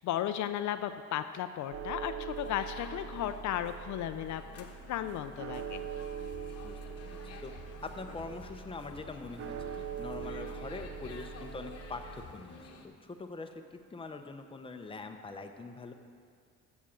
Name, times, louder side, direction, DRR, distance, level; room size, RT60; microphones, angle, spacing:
voice 1, 0.0-5.8, left 11 dB, 70° left, 10 dB, 0.5 m, -35 dB
sound 1, 1.7-12.3, right 7 dB, 50° right, 0.7 m, -43 dB
sound 2, 2.3-12.9, left 4 dB, 55° left, 1.1 m, -51 dB
voice 2, 6.6-7.5 7.8-15.9, left 3 dB, 20° left, 5 dB, 0.8 m, -44 dB
7.4 x 7.0 x 7.3 m, 2.3 s
cardioid pair, 90°, 30 cm